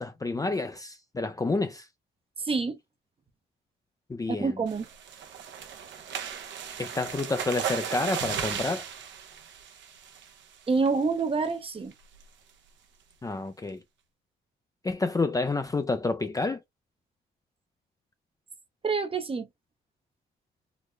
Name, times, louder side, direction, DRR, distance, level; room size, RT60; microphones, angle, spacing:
voice 1, 0.0-1.8 4.1-4.6 6.8-8.8 13.2-13.8 14.8-16.6, left 3 dB, 20° left, 0.5 m, -29 dB
voice 2, 2.4-2.8 4.3-4.9 10.7-11.9 18.8-19.5, right 4 dB, 30° right, 0.7 m, -27 dB
sound 1, 4.7-10.4 10.9-11.1 11.4-11.5 11.9-12.2, right 8 dB, 70° right, 0.9 m, -36 dB
3.9 x 2.1 x 3.1 m
cardioid pair, 90°, 20 cm